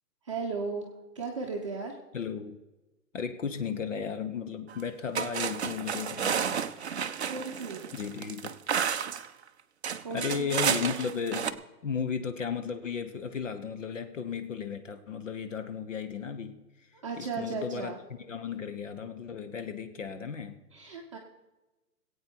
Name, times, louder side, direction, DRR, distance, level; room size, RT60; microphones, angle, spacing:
voice 1, 0.2-0.9 1.1-1.9 7.3-7.8 10.0-10.5 17.0-18.0 20.7-21.2, right 4 dB, 20° right, -2 dB, 0.8 m, -35 dB
voice 2, 2.1-2.6 3.1-6.7 7.9-8.5 10.1-16.9 17.2-17.9 18.3-20.6, left 6 dB, 50° left, 9 dB, 1.1 m, -35 dB
sound 1, 4.7-4.8 5.1-9.3 9.8-11.5, right 7 dB, 45° right, 0.6 m, -31 dB
20.0 x 8.7 x 4.5 m, 1.1 s
hypercardioid pair, 170°, 49 cm